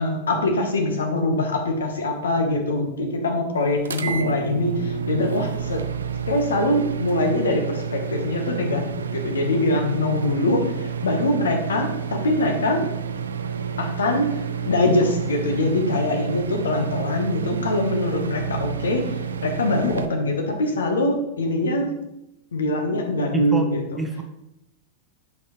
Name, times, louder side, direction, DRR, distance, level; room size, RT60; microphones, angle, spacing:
voice 1, 0.0-5.9 6.3-12.9 13.8-14.4 14.7-19.1 19.4-21.9 22.5-23.8, left 1 dB, 70° left, 3 dB, 1.1 m, -23 dB
sound 1, 3.8-20.1, right 7 dB, 70° right, 0.4 m, -30 dB
voice 2, 23.3-24.2, right 2 dB, 10° right, 3 dB, 0.8 m, -28 dB
7.7 x 5.4 x 3.1 m, 0.86 s
figure-of-eight pair, 90°, 0 cm